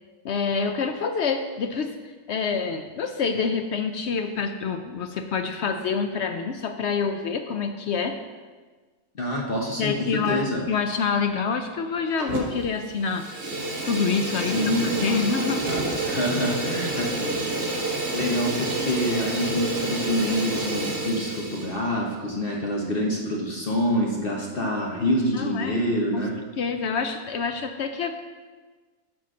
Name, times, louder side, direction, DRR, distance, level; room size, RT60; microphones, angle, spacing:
voice 1, 0.2-2.0 2.3-8.2 9.8-13.3 13.8-15.7 16.0-16.1 24.5-24.7 25.3-25.8 26.1-26.3 26.6-28.1, left 5 dB, 70° left, 6 dB, 0.6 m, -27 dB
voice 2, 9.1-10.7 14.5-14.9 16.0-17.1 18.1-26.3, equal, 40° left, -1 dB, 1.0 m, -26 dB
Fire, 12.2-12.7 13.0-21.7, right 2 dB, 80° right, 2.0 m, -29 dB
9.2 x 4.1 x 6.3 m, 1.4 s
omnidirectional pair, 1.6 m